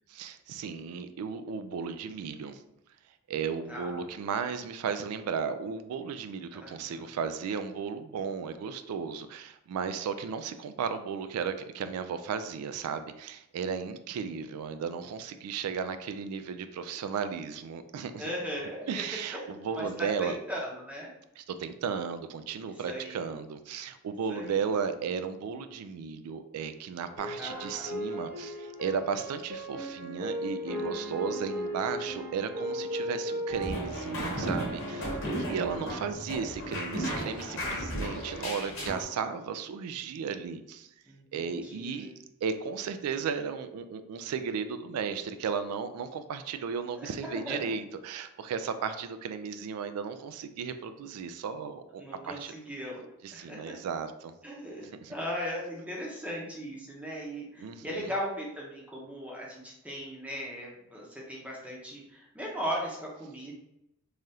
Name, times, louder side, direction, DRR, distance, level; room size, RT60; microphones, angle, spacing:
voice 1, 0.1-2.6 3.3-18.3 18.9-20.4 21.4-40.9 41.3-42.1 42.4-52.5 53.2-54.3 55.0-55.1 57.6-58.1, right 6 dB, 90° right, 13 dB, 0.3 m, -35 dB
voice 2, 3.7-4.1 6.5-7.1 18.2-19.0 19.3-21.1 22.7-23.3 24.3-24.7 27.4-27.9 41.1-42.2 47.0-47.8 52.0-53.8 54.4-63.5, equal, 5° right, -3 dB, 0.6 m, -38 dB
sound 1, 27.2-35.7, equal, 40° right, 0.9 m, -37 dB
sound 2, 33.5-39.0, equal, 60° left, 1.0 m, -35 dB
3.3 x 2.3 x 2.7 m, 0.83 s
head